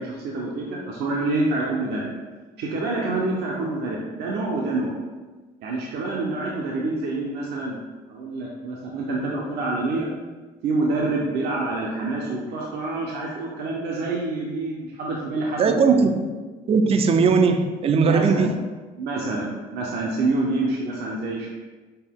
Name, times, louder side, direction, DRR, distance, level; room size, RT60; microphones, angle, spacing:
voice 1, 0.0-2.1 2.6-4.9 5.6-7.8 8.1-10.1 10.6-15.9 18.0-18.5 19.0-21.5, right 2 dB, 75° right, 0.7 m, -27 dB
voice 2, 15.6-16.3 16.7-18.5, right 5 dB, 35° right, 0.4 m, -19 dB
5.4 x 2.2 x 3.6 m
cardioid pair, 110°, 17 cm